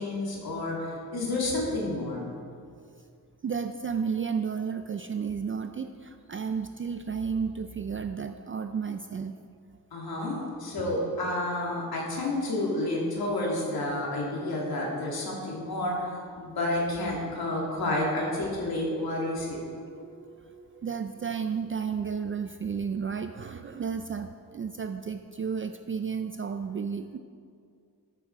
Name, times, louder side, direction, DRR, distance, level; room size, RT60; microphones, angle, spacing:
voice 1, 0.0-2.3 9.9-19.6, left 1 dB, 90° left, -3 dB, 2.7 m, -30 dB
voice 2, 3.4-9.3 20.8-27.2, right 6 dB, 35° right, 7 dB, 0.4 m, -32 dB
Guitar, 18.7-22.3, right 2 dB, 50° right, 2.0 m, -47 dB
13.0 x 7.4 x 4.6 m, 2.3 s
wide cardioid pair, 140°, 36 cm